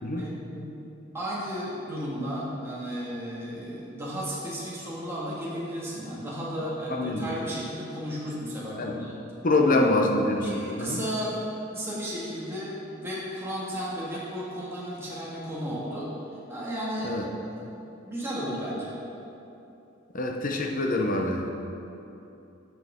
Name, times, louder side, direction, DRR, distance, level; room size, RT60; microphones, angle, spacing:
voice 1, 0.2-0.7 1.1-9.1 9.7-9.9 10.4-11.4 11.7-16.1 16.5-17.2 17.6-17.7 18.0-18.9, equal, 15° right, -8 dB, 1.9 m, -34 dB
voice 2, 6.9-7.3 8.7-9.1 9.4-11.0 17.0-17.3 20.1-21.5, left 2 dB, 45° left, 2 dB, 0.9 m, -25 dB
12.5 x 6.1 x 3.7 m, 2.9 s
head